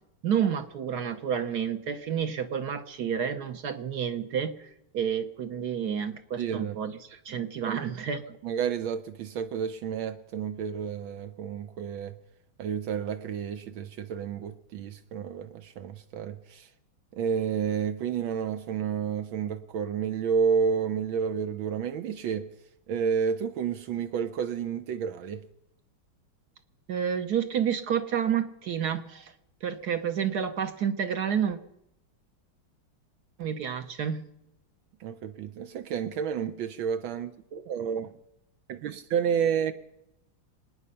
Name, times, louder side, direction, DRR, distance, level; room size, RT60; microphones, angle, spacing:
voice 1, 0.2-4.6 4.9-8.4 26.9-29.3 29.6-31.6 33.4-34.3, right 8 dB, 60° right, 1.4 m, -30 dB
voice 2, 6.4-6.7 7.7-7.8 8.4-12.2 12.6-16.7 17.1-22.5 22.9-25.4 35.0-38.1 38.7-39.7, right 7 dB, 80° right, 1.5 m, -30 dB
26.0 x 9.6 x 5.6 m
omnidirectional pair, 2.2 m